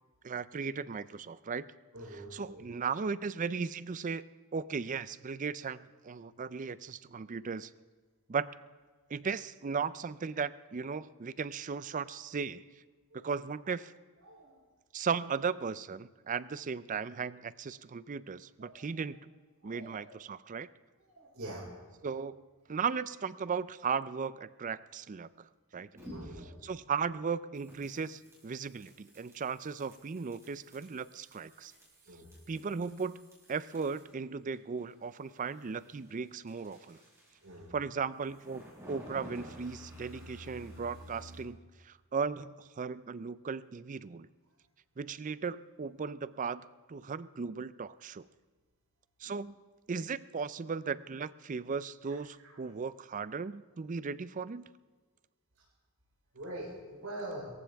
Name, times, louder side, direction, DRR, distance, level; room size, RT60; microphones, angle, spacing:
voice 1, 0.2-1.7 2.1-4.2 4.5-7.7 8.3-8.5 9.1-12.7 13.1-13.9 14.9-19.3 19.6-20.7 22.0-22.4 22.7-25.5 25.7-25.9 26.4-31.7 32.5-33.2 33.5-37.0 37.7-38.6 38.9-41.6 41.8-44.3 45.0-48.2 49.2-49.5 49.9-54.7, right 5 dB, 35° right, 17 dB, 0.4 m, -36 dB
voice 2, 1.9-2.6 14.2-14.5 18.6-18.7 19.6-20.1 21.1-21.6 26.1-26.5 32.1-32.3 37.4-37.7 49.2-49.4 56.3-57.5, right 1 dB, 70° right, -7 dB, 4.9 m, -44 dB
sound 1, 25.9-26.6 27.5-34.2 34.5-37.6 38.2-41.4, equal, 15° right, 6.1 m, -52 dB
24.5 x 15.0 x 3.5 m, 1.4 s
head